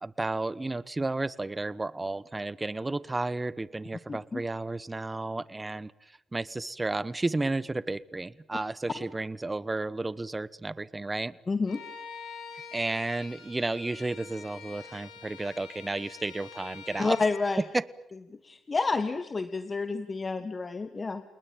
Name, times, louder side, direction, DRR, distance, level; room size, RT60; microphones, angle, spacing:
voice 1, 0.0-11.4 12.7-17.2 17.6-17.8, right 2 dB, 20° right, 19 dB, 1.1 m, -32 dB
voice 2, 4.1-4.4 9.0-9.1 11.5-11.8 17.0-17.6 18.4-21.2, left 4 dB, 35° left, 10 dB, 1.7 m, -29 dB
Bowed string instrument, 11.7-17.4, left 6 dB, 80° left, 6.5 m, -46 dB
28.5 x 20.0 x 9.1 m, 0.83 s
supercardioid pair, 60°, 0 cm